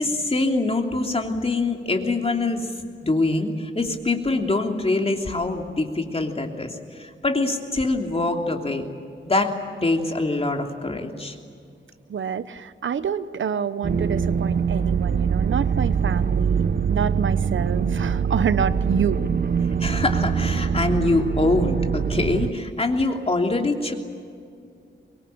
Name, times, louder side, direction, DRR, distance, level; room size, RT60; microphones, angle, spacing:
voice 1, 0.0-2.7 3.0-8.9 9.2-9.5 9.8-11.3 19.8-24.0, left 2 dB, 30° left, 3 dB, 3.0 m, -24 dB
voice 2, 12.1-19.2, right 7 dB, 75° right, 14 dB, 0.9 m, -27 dB
sound 1, 13.8-22.5, right 6 dB, 50° right, 1.0 m, -23 dB
25.0 x 22.0 x 8.9 m, 2.3 s
wide cardioid pair, 100°, 20 cm